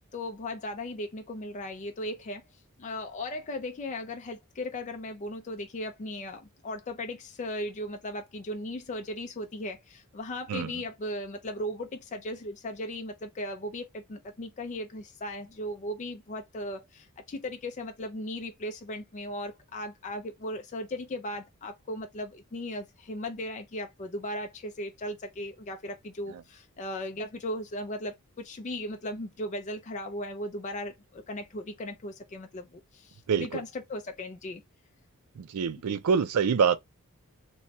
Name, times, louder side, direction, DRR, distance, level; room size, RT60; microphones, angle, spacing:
voice 1, 0.1-2.4 2.8-34.6, left 1 dB, 35° left, 0.4 m, -37 dB
voice 2, 10.5-10.8 26.3-26.4 33.3-33.6 35.4-36.8, right 6 dB, 85° right, 0.4 m, -26 dB
3.0 x 2.2 x 2.7 m
head